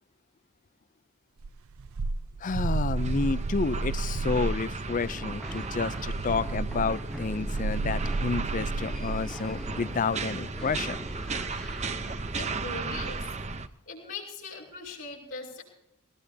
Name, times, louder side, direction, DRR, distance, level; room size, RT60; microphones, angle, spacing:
sound 1, 1.4-4.6 5.8-9.3, right 3 dB, 75° right, 0.6 m, -32 dB
voice 1, 2.4-11.0, left 4 dB, 35° left, 17 dB, 0.5 m, -30 dB
sound 2, 3.0-13.7, right 3 dB, 30° right, 0.8 m, -35 dB
sound 3, 4.8-12.4, equal, ahead, 1.1 m, -43 dB
voice 2, 12.4-13.3 13.9-15.6, left 4 dB, 70° left, -3 dB, 5.9 m, -40 dB
20.5 x 19.5 x 2.8 m, 0.78 s
head